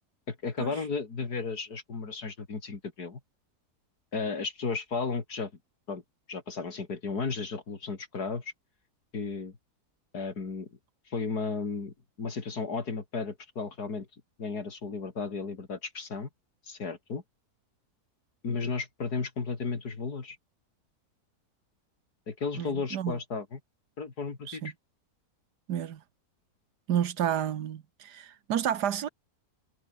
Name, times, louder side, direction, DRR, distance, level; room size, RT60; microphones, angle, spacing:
voice 1, 0.3-3.2 4.1-5.5 5.9-6.0 6.3-8.5 9.1-9.6 10.1-10.7 11.1-14.1 14.4-16.3 16.7-17.2 18.4-20.4 22.3-23.6 24.0-24.7, left 4 dB, 75° left, 3.4 m, -34 dB
voice 2, 22.6-23.2 24.5-24.7 25.7-26.0 26.9-29.1, right 10 dB, 90° right, 1.7 m, -30 dB
omnidirectional pair, 1.7 m